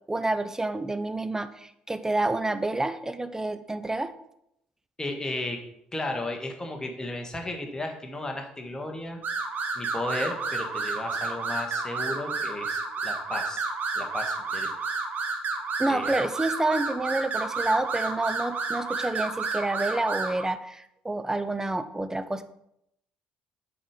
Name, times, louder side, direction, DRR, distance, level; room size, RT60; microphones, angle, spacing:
voice 1, 0.1-4.1 15.8-22.4, right 2 dB, 15° right, 11 dB, 0.7 m, -28 dB
voice 2, 5.0-5.6 5.9-9.2 9.7-13.6 13.9-14.7 15.9-16.1, left 2 dB, 15° left, 3 dB, 1.6 m, -34 dB
sound 1, 9.2-20.4, right 4 dB, 45° right, 1.4 m, -31 dB
7.2 x 4.3 x 5.0 m, 0.78 s
hypercardioid pair, 55°, 4 cm